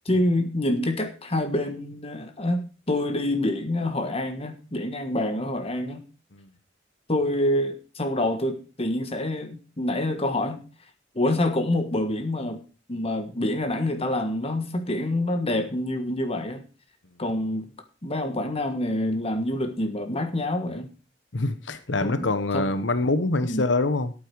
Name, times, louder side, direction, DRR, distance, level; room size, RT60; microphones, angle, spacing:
voice 1, 0.0-6.0 7.1-10.6 11.1-12.6 12.9-16.6 17.2-17.7 18.0-20.9 22.0-22.7 23.4-23.7, left 1 dB, 35° left, 1.5 m, -27 dB
voice 2, 21.3-24.1, left 2 dB, 75° left, 1.1 m, -25 dB
13.5 x 8.7 x 4.7 m
head